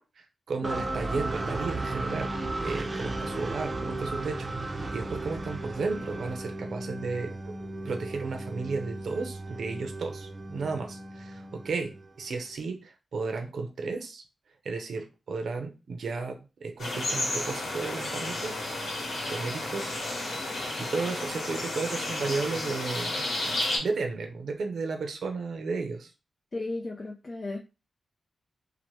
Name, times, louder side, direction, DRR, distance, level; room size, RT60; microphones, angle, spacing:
voice 1, 0.2-2.3 2.6-7.6 7.8-14.2 14.6-18.6 19.3-20.0 20.8-23.2 23.8-26.1, right 4 dB, 75° right, 4 dB, 0.6 m, -34 dB
sound 1, 0.6-12.4, right 2 dB, 30° right, 0.5 m, -35 dB
sound 2, 16.8-23.8, left 1 dB, 90° left, 1.1 m, -32 dB
voice 2, 26.5-27.6, left 2 dB, 45° left, 1 dB, 0.5 m, -35 dB
2.8 x 2.1 x 3.0 m, 0.29 s
cardioid pair, 80°, 0 cm